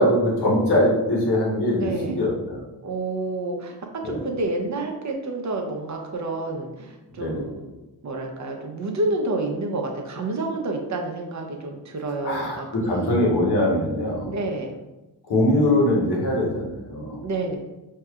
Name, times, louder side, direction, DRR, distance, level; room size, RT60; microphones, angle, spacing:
voice 1, 0.0-2.6 4.0-4.2 7.2-7.4 12.2-14.3 15.3-17.2, left 1 dB, 70° left, -2 dB, 1.3 m, -22 dB
voice 2, 1.8-2.2 2.8-7.7 8.0-13.2 14.3-14.7 17.2-17.6, right 2 dB, 45° right, 2 dB, 0.8 m, -29 dB
4.6 x 2.8 x 2.4 m, 1.0 s
cardioid pair, 70°, 41 cm